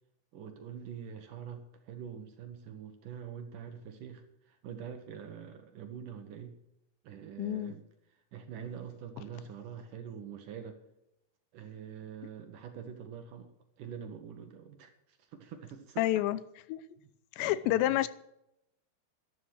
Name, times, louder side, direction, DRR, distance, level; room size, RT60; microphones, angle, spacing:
voice 1, 0.3-6.6 7.0-7.8 8.3-10.8 11.5-13.5 13.8-16.1 17.4-18.0, right 8 dB, 65° right, 6 dB, 2.4 m, -45 dB
voice 2, 7.4-7.7 16.0-16.4 16.7-16.8 17.4-18.1, left 15 dB, 90° left, 17 dB, 2.9 m, -28 dB
11.5 x 11.5 x 6.3 m, 0.82 s
omnidirectional pair, 4.9 m